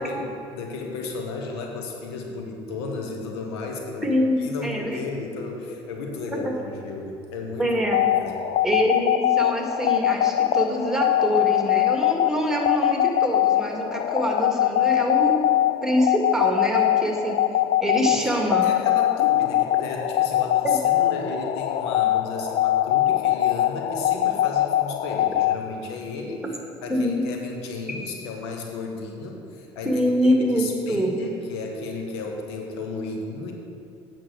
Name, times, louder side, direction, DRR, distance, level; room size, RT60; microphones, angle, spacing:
voice 1, 0.0-4.1 4.4-7.7 8.1-8.4 18.4-26.4 26.8-33.5, left 3 dB, 80° left, 2 dB, 1.1 m, -34 dB
voice 2, 4.0-5.0 6.3-6.4 7.6-8.0 8.6-15.4 15.8-17.4 17.8-18.7 20.6-20.8 26.9-27.2 29.8-31.2, equal, 5° right, 0 dB, 2.1 m, -24 dB
sound 1, 7.8-25.6, left 13 dB, 55° left, 0.4 m, -22 dB
8.6 x 6.2 x 6.3 m, 2.5 s
hypercardioid pair, 65°, 14 cm